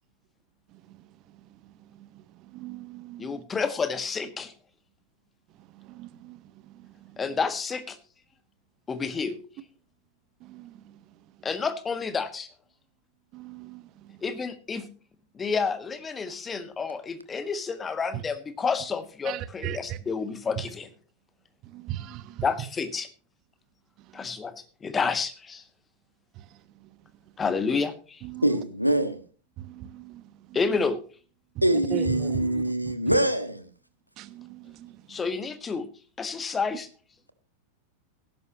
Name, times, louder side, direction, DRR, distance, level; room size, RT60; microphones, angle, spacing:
voice 1, 0.7-3.4 5.5-7.4 10.4-11.5 13.3-14.2 19.2-20.0 20.6-20.7 21.6-22.5 24.0-24.4 26.3-27.1 28.2-28.6 29.6-30.6 31.5-33.2 34.2-35.2, right 13 dB, 40° right, 1.1 m, -39 dB
voice 2, 3.2-4.5 7.2-8.0 8.9-9.4 11.4-12.5 14.2-14.9 15.3-20.9 22.4-23.1 24.1-24.5 24.8-25.6 27.4-28.2 30.5-31.0 35.1-35.9 36.2-36.9, left 5 dB, 20° left, 1.5 m, -29 dB
voice 3, 28.4-29.2 31.6-33.7, right 1 dB, 90° right, 1.4 m, -24 dB
18.0 x 11.0 x 2.9 m
figure-of-eight pair, 90°, 0 cm